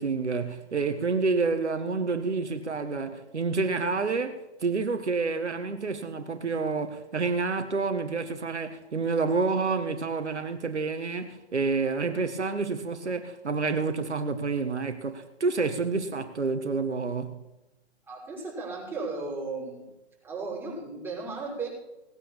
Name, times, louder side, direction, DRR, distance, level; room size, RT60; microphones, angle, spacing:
voice 1, 0.0-17.4, right 4 dB, 85° right, 1.6 m, -28 dB
voice 2, 18.1-19.9 20.2-21.7, right 3 dB, 5° right, 6.0 m, -35 dB
18.5 x 8.8 x 7.2 m
figure-of-eight pair, 130°, 33 cm